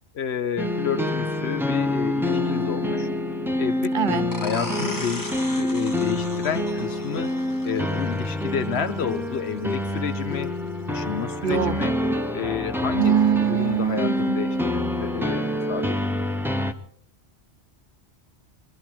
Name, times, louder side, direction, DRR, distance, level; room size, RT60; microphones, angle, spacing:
voice 1, 0.1-3.1 3.6-3.9 4.4-7.3 7.6-10.5 10.9-12.0 12.3-13.1 13.4-16.0, left 7 dB, 75° left, 11 dB, 1.2 m, -30 dB
sound 1, 0.6-16.7, left 1 dB, 5° right, 0.6 m, -27 dB
voice 2, 3.9-4.3 11.4-11.8 13.0-14.2, right 9 dB, 55° right, 13 dB, 1.0 m, -22 dB
sound 2, 4.3-9.7, left 1 dB, 20° left, 0.9 m, -38 dB
22.5 x 13.0 x 4.5 m, 0.63 s
omnidirectional pair, 1.1 m